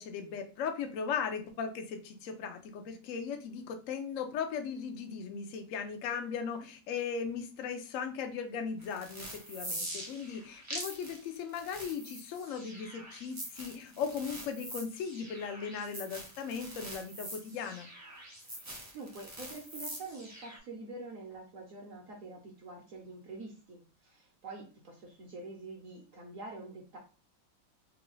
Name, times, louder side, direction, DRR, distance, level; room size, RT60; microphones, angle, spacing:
voice 1, 0.0-17.9, left 6 dB, 85° left, 5 dB, 0.7 m, -38 dB
sound 1, 8.8-20.6, right 1 dB, 25° right, 0.4 m, -44 dB
voice 2, 18.4-27.0, right 3 dB, 65° right, 0 dB, 0.8 m, -46 dB
3.7 x 2.3 x 3.1 m, 0.34 s
omnidirectional pair, 2.1 m